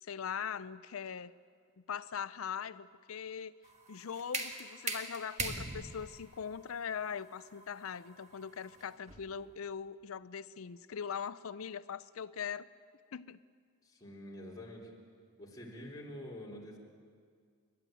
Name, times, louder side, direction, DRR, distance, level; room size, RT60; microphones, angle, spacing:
voice 1, 0.0-1.3 1.9-3.6 3.9-12.7 13.1-13.4, left 7 dB, 70° left, 15 dB, 0.5 m, -41 dB
sound 1, 3.6-9.4, right 3 dB, 30° right, 1.8 m, -41 dB
voice 2, 13.8-14.9 15.4-16.8, left 1 dB, 20° left, -3 dB, 3.6 m, -47 dB
29.5 x 12.5 x 9.1 m, 2.1 s
head